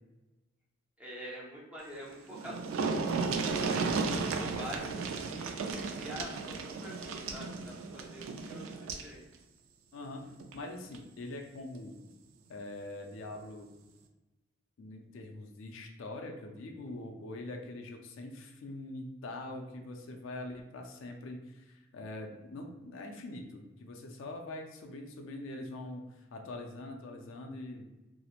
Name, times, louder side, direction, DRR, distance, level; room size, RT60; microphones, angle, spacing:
voice 1, 1.0-3.2 4.1-9.2, equal, 5° right, -5 dB, 0.5 m, -46 dB
sound 1, 2.0-2.1 2.3-9.1 10.4-10.5 10.9-11.0, right 4 dB, 75° right, 0.3 m, -34 dB
voice 2, 9.9-12.0 12.5-13.7 14.8-27.9, left 2 dB, 70° left, 3 dB, 0.4 m, -43 dB
2.9 x 2.0 x 2.4 m, 1.1 s
head